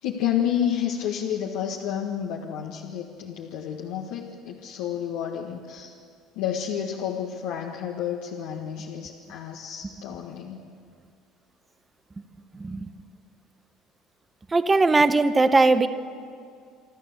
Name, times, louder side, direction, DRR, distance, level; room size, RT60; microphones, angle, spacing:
voice 1, 0.0-5.9 6.3-10.7, left 9 dB, 75° left, -1 dB, 1.6 m, -30 dB
voice 2, 14.5-15.9, right 3 dB, 20° right, 12 dB, 1.1 m, -19 dB
26.0 x 13.5 x 8.1 m, 2.3 s
hypercardioid pair, 75°, 0 cm